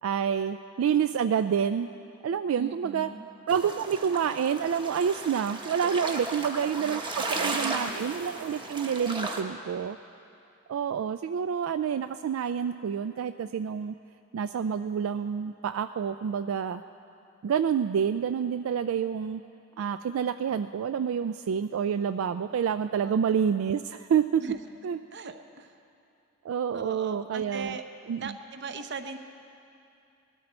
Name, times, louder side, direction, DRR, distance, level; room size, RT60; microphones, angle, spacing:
voice 1, 0.0-1.9 2.2-3.1 3.5-10.0 10.7-14.0 14.3-16.8 17.4-19.4 19.8-24.4 24.8-25.0 26.4-27.8 28.1-28.3, right 7 dB, 85° right, 10 dB, 0.3 m, -28 dB
voice 2, 2.6-3.3 6.4-7.0 7.3-8.0 23.0-23.1 24.4-24.6 25.1-25.7 26.7-27.8 28.2-29.2, right 3 dB, 55° right, 8 dB, 0.8 m, -40 dB
sound 1, 3.5-9.4, right 2 dB, 25° right, 0.9 m, -35 dB
19.5 x 13.0 x 4.3 m, 2.6 s
head